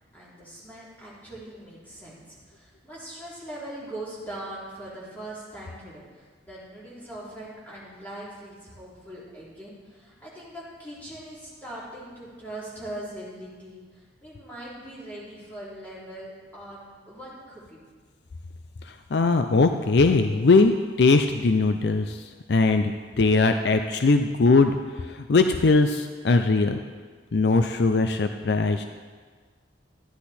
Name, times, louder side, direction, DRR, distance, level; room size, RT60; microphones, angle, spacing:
voice 1, 0.1-17.9, right 1 dB, 10° left, -8 dB, 3.3 m, -41 dB
voice 2, 18.8-26.8 27.3-28.9, left 3 dB, 60° left, 7 dB, 0.5 m, -21 dB
13.0 x 10.0 x 4.3 m, 1.5 s
head